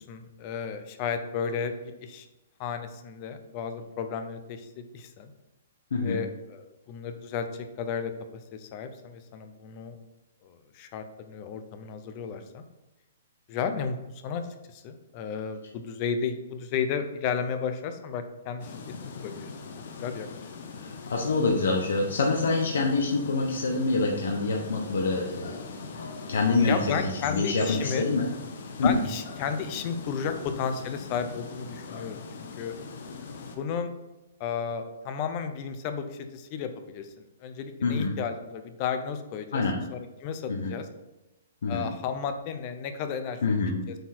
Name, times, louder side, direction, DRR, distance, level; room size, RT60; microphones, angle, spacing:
voice 1, 0.0-2.3 2.6-4.7 4.9-5.3 6.0-8.1 8.5-10.0 10.4-12.6 13.5-14.0 14.2-14.4 14.7-18.7 19.0-19.5 20.0-20.3 26.7-28.0 28.8-32.7 33.5-33.9 34.4-37.1 37.4-39.6 39.9-40.9 41.7-43.4 43.9-44.0, left 6 dB, 30° left, 8 dB, 0.7 m, -33 dB
sound 1, 18.6-33.6, left 4 dB, 55° left, 1.1 m, -41 dB
voice 2, 20.8-25.8 26.3-28.3 28.8-29.0 37.8-38.1 39.5-39.8 40.5-40.7 41.6-41.9 43.4-43.8, left 3 dB, 80° left, 1 dB, 1.0 m, -26 dB
7.8 x 4.5 x 4.3 m, 1.0 s
hypercardioid pair, 165°, 0 cm